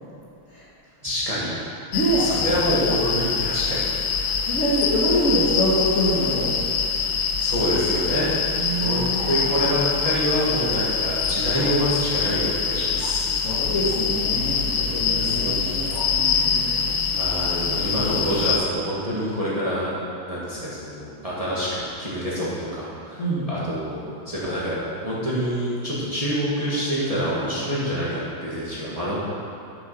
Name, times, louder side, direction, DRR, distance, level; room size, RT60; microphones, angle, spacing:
voice 1, 1.0-1.6 2.2-3.9 5.3-5.4 7.4-8.3 8.8-13.3 14.8-16.0 16.3-16.7 17.2-19.9 20.3-29.2, equal, 20° right, -8 dB, 1.6 m, -27 dB
sound 1, 1.9-18.6, left 6 dB, 75° left, 1.5 m, -24 dB
voice 2, 1.9-2.3 4.5-6.6 8.5-9.3 13.4-16.8 17.5-18.3 23.2-23.4, equal, 40° left, -8 dB, 1.5 m, -25 dB
7.2 x 6.7 x 6.0 m, 2.7 s
omnidirectional pair, 2.3 m